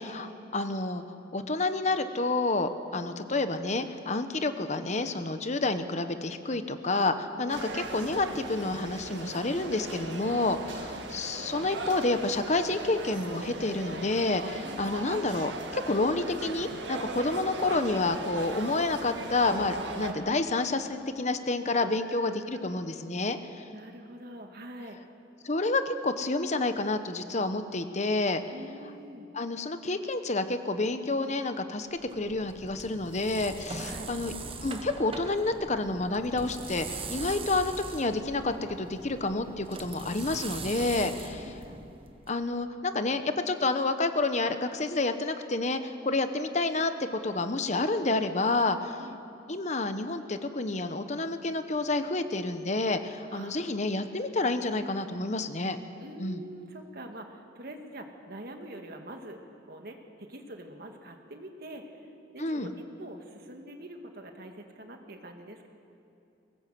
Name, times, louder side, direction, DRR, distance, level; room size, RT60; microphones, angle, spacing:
voice 1, 0.0-23.6 25.4-28.4 29.3-34.3 34.6-41.5 42.3-49.0 49.5-55.8 56.2-56.4 62.4-62.7, left 2 dB, 40° left, 9 dB, 1.1 m, -29 dB
voice 2, 2.9-3.3 7.4-8.1 10.8-11.1 14.6-14.9 17.2-17.4 20.0-20.4 21.7-22.6 23.7-25.0 28.5-29.3 32.1-32.3 33.8-34.1 37.2-37.3 41.4-41.6 49.0-49.2 53.3-53.7 56.0-59.4 59.7-65.7, right 1 dB, 55° right, 4 dB, 2.1 m, -45 dB
sound 1, 7.5-20.1, right 2 dB, 90° right, 2.0 m, -38 dB
sound 2, 32.0-42.3, right 3 dB, 30° right, 1.3 m, -41 dB
22.5 x 19.0 x 7.7 m, 2.6 s
head